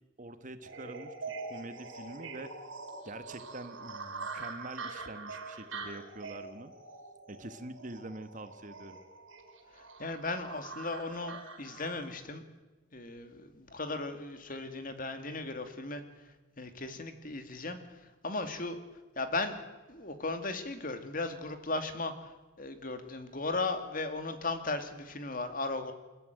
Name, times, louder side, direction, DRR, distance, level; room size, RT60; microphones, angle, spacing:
voice 1, 0.2-2.5 3.0-6.7 7.3-9.0, right 2 dB, 40° right, 10 dB, 1.2 m, -45 dB
sound 1, 0.6-12.1, right 4 dB, 80° right, 5.0 m, -44 dB
voice 2, 9.8-12.4 12.9-16.0 16.6-17.8 18.2-18.8 19.2-19.6 19.9-22.3 22.6-25.9, left 3 dB, 45° left, 8 dB, 2.4 m, -36 dB
29.0 x 13.0 x 9.2 m, 1.2 s
head